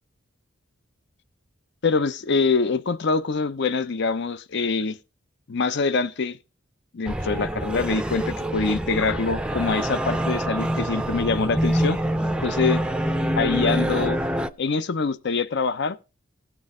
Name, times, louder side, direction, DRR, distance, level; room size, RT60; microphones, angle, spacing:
voice 1, 1.8-5.0 5.5-6.4 6.9-12.0 12.4-12.8 13.4-14.2 14.6-16.1, left 4 dB, 60° left, 0.6 m, -24 dB
sound 1, 7.1-14.5, right 1 dB, 5° right, 0.5 m, -26 dB
17.0 x 6.2 x 3.6 m
head